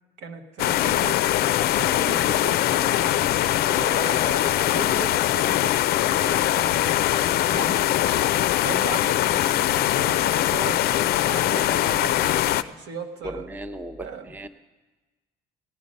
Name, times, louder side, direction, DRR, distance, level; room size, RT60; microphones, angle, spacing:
voice 1, 0.2-1.2 1.7-3.2 3.7-8.0 8.6-13.5 14.0-14.3, right 5 dB, 85° right, 3 dB, 1.4 m, -37 dB
sound 1, 0.6-12.6, left 13 dB, 65° left, 0.4 m, -22 dB
voice 2, 13.2-14.5, right 1 dB, 10° right, 9 dB, 0.6 m, -36 dB
18.0 x 10.5 x 5.3 m, 1.2 s
cardioid pair, 110°, 17 cm